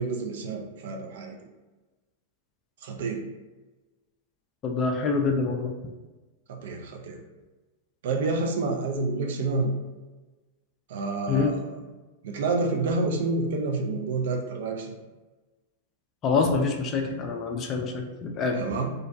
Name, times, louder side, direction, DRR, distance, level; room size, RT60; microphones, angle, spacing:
voice 1, 0.0-1.4 2.8-3.2 6.5-7.2 8.0-9.7 10.9-11.8 12.2-14.9 18.5-18.9, right 3 dB, 65° right, 3 dB, 0.4 m, -28 dB
voice 2, 4.6-5.7 11.3-11.5 16.2-18.6, left 4 dB, 35° left, 2 dB, 0.3 m, -26 dB
2.5 x 2.1 x 2.6 m, 1.2 s
hypercardioid pair, 100°, 0 cm